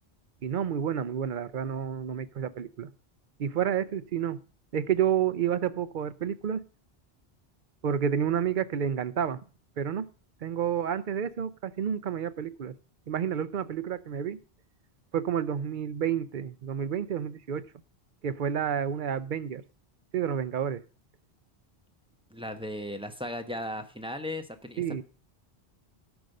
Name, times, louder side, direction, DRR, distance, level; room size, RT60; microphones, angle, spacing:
voice 1, 0.4-2.9 3.4-4.4 4.7-6.6 7.8-9.4 9.8-10.1 10.4-12.7 13.1-14.4 15.1-17.7 18.2-19.6 20.1-20.8 24.8-25.0, right 8 dB, 55° right, 13 dB, 0.7 m, -30 dB
voice 2, 22.3-25.0, left 1 dB, 5° right, 6 dB, 0.8 m, -36 dB
12.5 x 5.2 x 6.5 m, 0.38 s
omnidirectional pair, 1.1 m